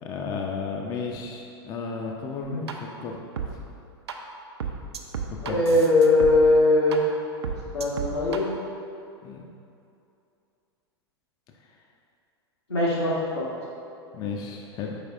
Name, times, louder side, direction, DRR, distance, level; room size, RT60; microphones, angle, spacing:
voice 1, 0.0-2.7 3.0-3.2 3.5-3.6 5.4-5.8 9.2-9.5 14.1-15.0, left 5 dB, 30° left, 1 dB, 0.4 m, -33 dB
sound 1, 2.4-2.7 3.4-3.5 4.1-4.2 4.6-6.3 6.9-7.0 7.4-8.4, right 7 dB, 75° right, 0.4 m, -31 dB
voice 2, 5.4-7.0 7.7-8.5 12.7-13.4, left 2 dB, 80° left, -7 dB, 1.3 m, -20 dB
4.8 x 4.6 x 2.4 m, 2.6 s
figure-of-eight pair, 95°, 14 cm